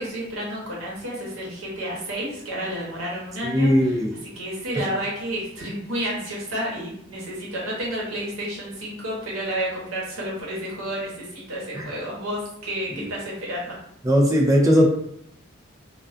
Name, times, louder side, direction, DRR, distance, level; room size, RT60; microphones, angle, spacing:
voice 1, 0.0-3.7 4.4-13.8, right 1 dB, 90° right, -4 dB, 0.9 m, -30 dB
voice 2, 3.4-4.1 4.7-4.8 11.7-11.9 12.9-13.1 14.0-14.9, equal, 15° right, 0 dB, 0.4 m, -19 dB
2.3 x 2.2 x 2.4 m, 0.71 s
head